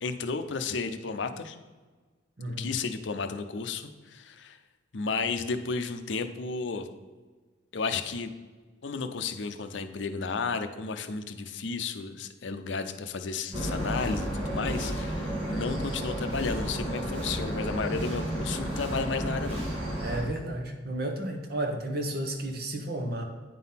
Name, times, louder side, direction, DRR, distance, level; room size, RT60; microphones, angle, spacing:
voice 1, 0.0-1.6 2.6-4.6 4.9-6.9 7.7-8.3 8.8-19.6, left 4 dB, 70° left, 8 dB, 0.6 m, -33 dB
voice 2, 2.4-2.7 20.0-23.2, right 1 dB, 55° right, 3 dB, 1.1 m, -32 dB
sound 1, 13.5-20.2, right 1 dB, 30° right, 2.5 m, -32 dB
9.2 x 3.9 x 5.7 m, 1.3 s
head